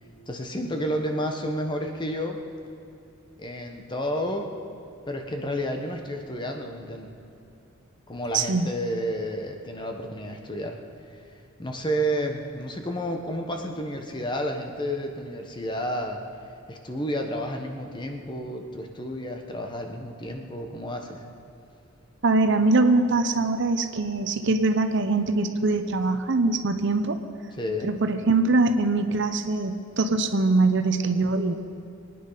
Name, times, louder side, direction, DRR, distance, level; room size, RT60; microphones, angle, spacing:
voice 1, 0.3-2.4 3.4-4.5 5.1-7.1 8.1-10.8 11.6-16.2 16.7-21.2 27.6-27.9, equal, 20° left, 3 dB, 1.3 m, -31 dB
voice 2, 8.3-8.7 22.2-27.2 27.8-31.5, right 3 dB, 60° right, 8 dB, 0.8 m, -23 dB
23.0 x 9.6 x 5.7 m, 2.6 s
head